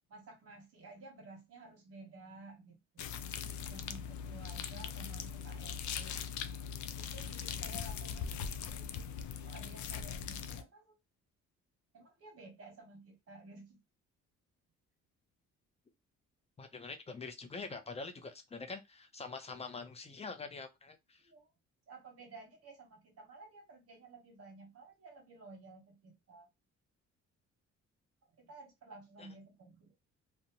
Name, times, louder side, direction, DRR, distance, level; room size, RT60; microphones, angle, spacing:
voice 1, 0.1-3.0 3.7-6.2 6.9-9.1 9.4-11.0 11.9-13.8 21.2-21.5 21.9-26.5 28.4-30.1, right 2 dB, 50° right, 1.0 m, -54 dB
sound 1, 3.0-10.6, left 7 dB, 70° left, 0.5 m, -41 dB
voice 2, 16.6-21.2 29.2-29.3, left 4 dB, 20° left, 0.6 m, -45 dB
2.6 x 2.2 x 2.8 m
cardioid pair, 90°, 30 cm